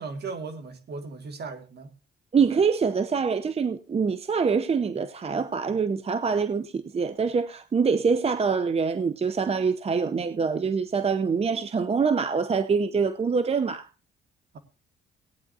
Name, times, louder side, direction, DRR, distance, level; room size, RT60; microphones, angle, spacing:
voice 1, 0.0-1.9, right 4 dB, 55° right, 2.1 m, -37 dB
voice 2, 2.3-13.9, right 5 dB, 30° right, 0.7 m, -25 dB
18.0 x 9.5 x 2.7 m
cardioid pair, 90°, 20 cm